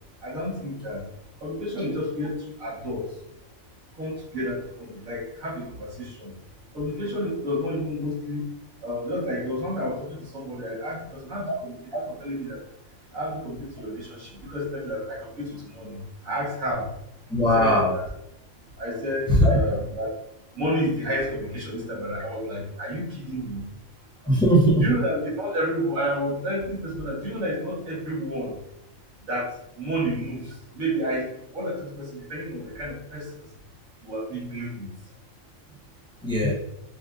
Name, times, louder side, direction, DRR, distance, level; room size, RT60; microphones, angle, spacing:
voice 1, 0.2-1.0 1.4-3.1 4.0-6.3 6.7-8.4 8.8-12.6 13.1-16.9 17.6-18.0 18.8-20.1 20.6-23.7 24.8-28.5 29.3-33.3 34.0-34.9, equal, 75° right, -4 dB, 1.8 m, -30 dB
voice 2, 17.3-18.0 19.3-19.6 24.2-24.8 36.2-36.5, equal, 5° left, -4 dB, 0.7 m, -19 dB
5.8 x 2.5 x 2.5 m, 0.77 s
omnidirectional pair, 1.4 m